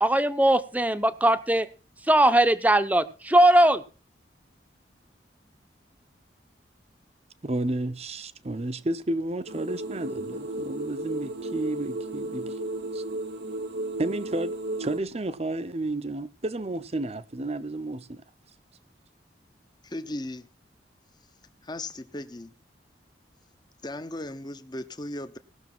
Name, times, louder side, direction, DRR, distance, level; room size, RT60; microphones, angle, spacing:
voice 1, 0.0-1.7 2.0-3.8, right 1 dB, 10° right, 0.9 m, -20 dB
voice 2, 7.4-12.5 12.9-13.0 14.0-14.5 14.8-18.2, right 2 dB, 35° right, 0.8 m, -31 dB
sound 1, 9.5-15.0, right 1 dB, 90° right, 1.5 m, -34 dB
voice 3, 19.8-20.5 21.6-22.5 23.8-25.4, left 1 dB, 25° left, 1.0 m, -36 dB
18.0 x 6.6 x 6.1 m
head